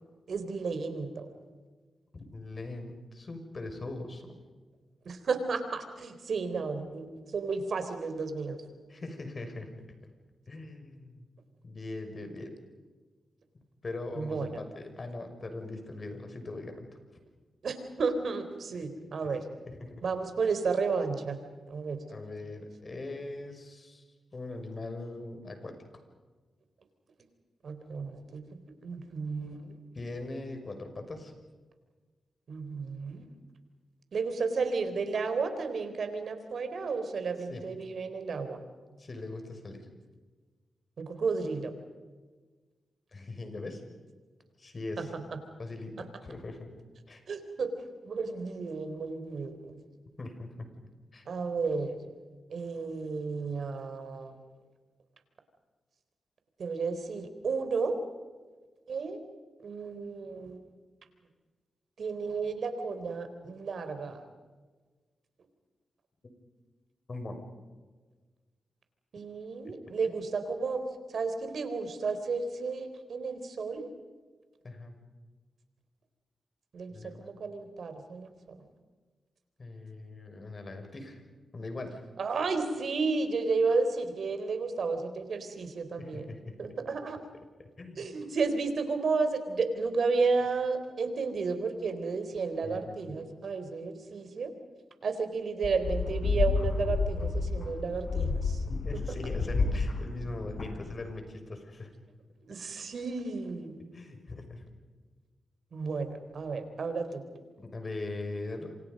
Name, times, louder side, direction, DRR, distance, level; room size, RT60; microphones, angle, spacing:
voice 1, 0.3-1.3 5.1-7.1 7.3-8.6 14.2-14.5 17.6-19.4 20.0-21.4 21.7-22.0 27.6-29.8 32.5-33.3 34.1-38.6 41.0-41.7 45.0-45.1 47.3-47.7 48.0-49.8 51.3-52.0 52.5-54.4 56.6-58.0 58.9-59.2 59.6-60.6 62.0-64.2 69.1-70.8 71.1-73.9 76.7-78.3 82.2-86.3 86.6-87.2 88.0-94.5 95.0-98.6 102.5-103.8 105.7-107.2, right 4 dB, 70° right, 9 dB, 4.0 m, -32 dB
voice 2, 2.1-4.3 8.9-9.7 10.5-11.2 11.6-12.5 13.8-16.9 19.2-20.0 22.1-24.0 24.3-25.8 29.9-31.3 37.5-37.7 39.0-39.9 43.1-43.8 44.6-45.1 45.6-46.7 47.1-47.2 50.2-50.7 51.1-51.3 66.2-66.3 67.1-67.4 74.6-75.0 76.9-77.3 79.6-82.0 86.0-86.5 87.6-88.1 92.6-93.2 98.8-101.9 103.9-104.7 107.6-108.7, left 2 dB, 45° left, 6 dB, 6.1 m, -41 dB
sound 1, 95.6-101.1, left 4 dB, 70° left, 4.6 m, -30 dB
28.5 x 26.0 x 5.4 m, 1.4 s
cardioid pair, 55°, 0 cm